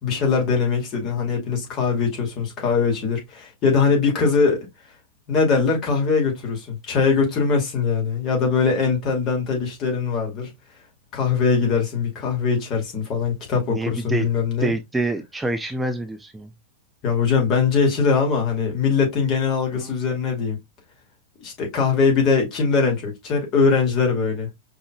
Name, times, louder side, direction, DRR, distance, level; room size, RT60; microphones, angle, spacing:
voice 1, 0.0-4.7 5.3-10.5 11.1-14.7 17.0-20.6 21.4-24.5, left 5 dB, 35° left, 2.3 m, -21 dB
voice 2, 13.7-14.3 14.6-16.5 19.7-19.9, right 2 dB, 10° right, 0.5 m, -26 dB
5.2 x 3.5 x 2.2 m
figure-of-eight pair, 90°, 0 cm